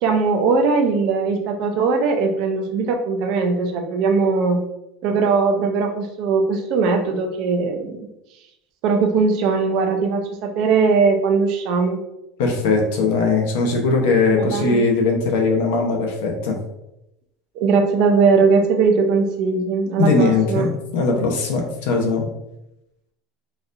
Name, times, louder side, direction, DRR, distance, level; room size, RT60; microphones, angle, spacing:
voice 1, 0.0-4.6 5.0-8.1 8.8-12.0 14.3-14.8 17.6-20.7, right 4 dB, 50° right, 4 dB, 0.5 m, -19 dB
voice 2, 12.4-16.6 20.0-22.3, left 3 dB, 85° left, 1 dB, 0.8 m, -20 dB
4.0 x 2.6 x 2.5 m, 0.85 s
cardioid pair, 165°, 0 cm